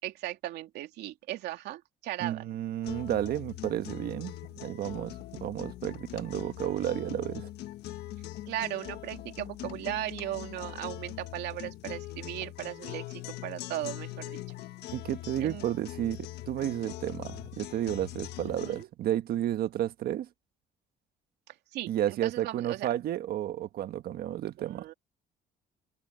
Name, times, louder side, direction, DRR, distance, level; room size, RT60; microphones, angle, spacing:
voice 1, 0.0-2.5 8.5-14.4 15.4-15.6 18.6-18.9 21.5-22.9 24.6-24.9, right 14 dB, 80° right, 3.0 m, -37 dB
voice 2, 2.2-4.3 4.6-7.5 14.9-20.3 21.9-24.8, right 12 dB, 65° right, 1.5 m, -32 dB
sound 1, 2.8-18.8, left 15 dB, 75° left, 1.4 m, -42 dB
cardioid pair, 110°, 17 cm